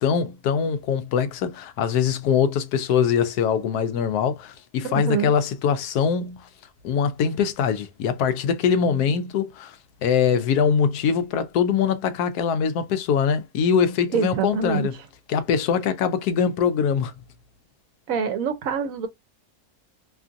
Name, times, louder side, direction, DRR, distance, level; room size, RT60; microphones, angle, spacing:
voice 1, 0.0-6.5 6.8-9.8 10.0-14.9 15.3-17.1, left 7 dB, 85° left, 1.1 m, -23 dB
voice 2, 4.8-5.3 14.1-14.9 18.1-19.1, right 6 dB, 70° right, 1.0 m, -25 dB
2.9 x 2.5 x 2.5 m
omnidirectional pair, 1.6 m